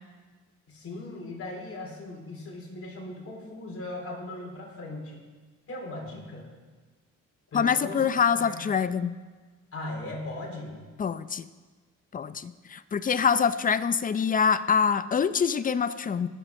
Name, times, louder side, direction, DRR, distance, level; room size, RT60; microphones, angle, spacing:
voice 1, 0.7-5.2 5.7-6.5 7.5-8.1 8.3-8.7 9.7-10.8, left 2 dB, 50° left, -2 dB, 3.9 m, -38 dB
voice 2, 7.5-9.2 11.0-11.5 12.1-16.3, left 6 dB, 30° left, 14 dB, 0.5 m, -25 dB
20.5 x 7.6 x 3.6 m, 1.4 s
cardioid pair, 90°, 30 cm